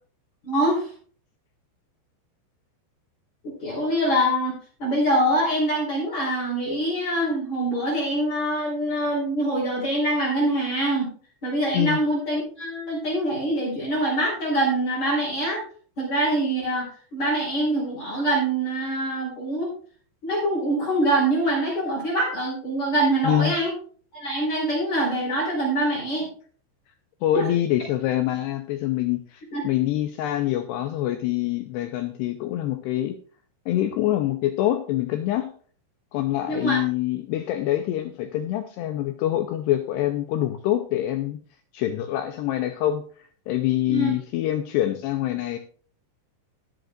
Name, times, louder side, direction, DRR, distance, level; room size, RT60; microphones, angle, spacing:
voice 1, 0.4-0.9 3.4-11.1 11.4-15.6 16.0-19.7 20.2-23.7 24.1-26.3 27.3-27.5 29.5-29.6 36.5-36.8 43.9-44.1, right 1 dB, 35° left, -7 dB, 5.3 m, -24 dB
voice 2, 23.2-23.5 27.2-33.2 33.7-35.5 36.1-41.4 41.7-43.0 43.5-45.6, left 13 dB, 90° left, 7 dB, 2.4 m, -25 dB
20.5 x 7.9 x 2.5 m, 0.44 s
omnidirectional pair, 5.6 m